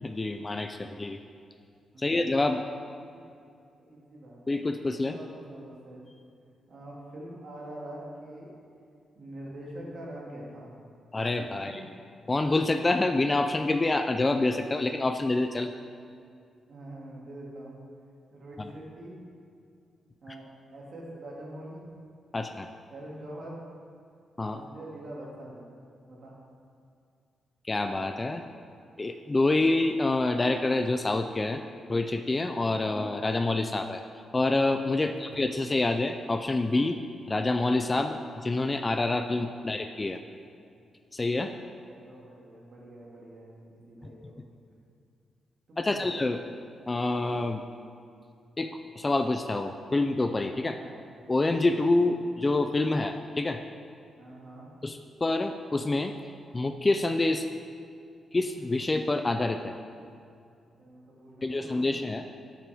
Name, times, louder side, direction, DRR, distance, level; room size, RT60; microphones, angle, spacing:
voice 1, 0.0-1.2 2.0-2.6 4.5-5.2 11.1-11.7 12.3-15.7 20.3-20.4 22.3-22.7 24.4-24.6 27.6-28.4 29.0-31.6 31.9-34.0 34.3-37.0 37.3-40.2 41.1-41.5 45.8-46.4 46.9-47.6 48.6-48.7 49.0-50.8 51.3-53.6 54.8-56.1 56.5-57.5 58.3-59.7 61.4-62.3, left 2 dB, 20° left, 7 dB, 0.3 m, -27 dB
voice 2, 1.9-2.2 3.0-3.2 3.8-4.4 4.9-6.0 6.7-8.5 9.1-10.7 11.6-11.8 16.7-17.8 18.3-19.1 20.2-20.4 20.7-21.9 22.9-23.6 24.4-25.6 26.0-26.3 35.0-35.3 39.6-39.8 41.9-44.3 45.7-46.1 50.8-51.0 52.0-52.2 54.2-54.7 60.8-61.9, right 1 dB, 45° right, -4 dB, 2.2 m, -44 dB
12.0 x 7.5 x 3.4 m, 2.4 s
wide cardioid pair, 150°, 0 cm